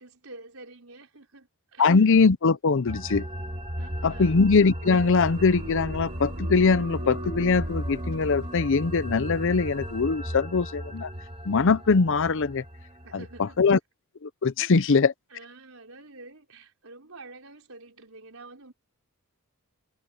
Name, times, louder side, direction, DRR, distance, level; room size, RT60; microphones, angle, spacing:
voice 1, 0.0-2.0 3.8-4.4 13.0-13.7 14.6-15.0 15.3-18.7, right 3 dB, 65° right, 5.6 m, -48 dB
voice 2, 1.8-3.2 4.0-11.1 11.5-12.6 13.6-13.8 14.2-15.1, left 4 dB, 60° left, 0.6 m, -22 dB
sound 1, 2.9-13.7, equal, 25° right, 2.1 m, -35 dB
sound 2, 4.8-10.0, right 2 dB, 85° right, 3.1 m, -44 dB
head